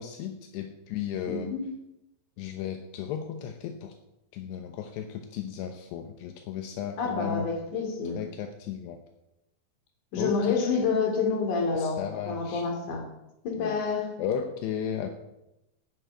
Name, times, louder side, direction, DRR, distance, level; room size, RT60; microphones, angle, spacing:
voice 1, 0.0-1.5 2.4-3.9 4.3-7.5 8.2-9.0 10.2-10.6 11.7-12.6 13.6-13.7 14.2-15.1, left 9 dB, 80° left, 5 dB, 3.1 m, -35 dB
voice 2, 1.3-1.7 7.0-8.2 10.1-13.1 13.4-14.1, left 4 dB, 50° left, 3 dB, 4.0 m, -28 dB
11.5 x 10.0 x 9.2 m, 0.90 s
omnidirectional pair, 5.0 m